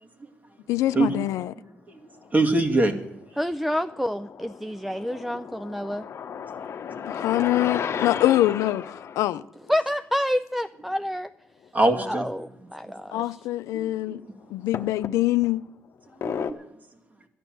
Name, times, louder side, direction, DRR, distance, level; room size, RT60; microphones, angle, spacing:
voice 1, 0.7-1.5 7.1-8.8 9.2-9.4 13.1-14.2 14.5-15.6, left 15 dB, 90° left, 0.4 m, -24 dB
sound 1, 0.9-1.5 2.3-3.1 3.5-9.2 11.7-11.8 12.1-12.2 13.0-13.1 14.7-15.6 16.2-16.5, left 7 dB, 60° left, 0.9 m, -34 dB
voice 2, 2.3-2.9 11.7-12.3 13.1-13.2 13.7-14.1 16.2-16.5, right 2 dB, 30° right, 2.2 m, -23 dB
voice 3, 3.4-6.1 9.7-11.3 12.1-13.2, equal, 5° right, 0.5 m, -28 dB
12.5 x 11.0 x 7.5 m
supercardioid pair, 60°, 5 cm